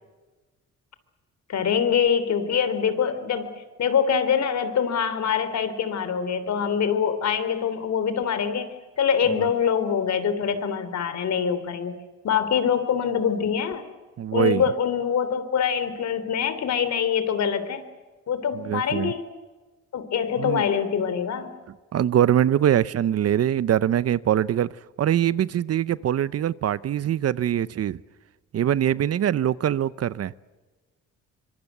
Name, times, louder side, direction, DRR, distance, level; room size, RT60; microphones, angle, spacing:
voice 1, 1.5-3.5 3.8-11.9 12.2-13.9 14.3-17.8 18.3-19.2 19.9-21.5, left 7 dB, 65° left, 3.3 m, -24 dB
voice 2, 14.2-14.6 18.5-19.1 20.4-20.6 21.9-24.7 25.0-28.0 28.5-30.3, right 10 dB, 55° right, 0.8 m, -23 dB
25.0 x 23.5 x 8.1 m
cardioid pair, 90°, 30 cm